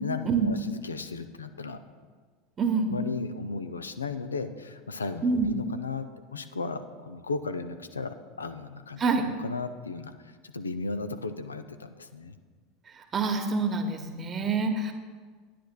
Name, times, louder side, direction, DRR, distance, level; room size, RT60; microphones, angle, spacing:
voice 1, 0.0-1.8 2.9-10.1 10.4-12.4, left 4 dB, 85° left, 9 dB, 0.4 m, -35 dB
voice 2, 2.6-2.9 5.2-5.5 9.0-9.2 13.1-14.9, right 4 dB, 30° right, 5 dB, 1.0 m, -26 dB
10.0 x 10.0 x 2.2 m, 1.5 s
figure-of-eight pair, 80°, 0 cm